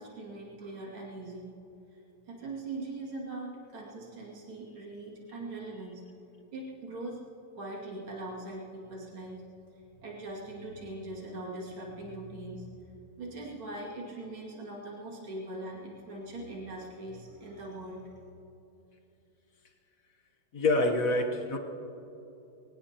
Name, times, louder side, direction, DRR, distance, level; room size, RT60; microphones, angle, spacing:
voice 1, 0.0-1.5 1.9-2.0 2.3-6.1 6.5-7.2 7.6-9.4 10.0-18.1, right 2 dB, 70° right, -3 dB, 3.2 m, -41 dB
voice 2, 20.5-21.6, left 2 dB, 45° left, 3 dB, 1.4 m, -26 dB
23.5 x 18.5 x 2.9 m, 2.9 s
omnidirectional pair, 2.3 m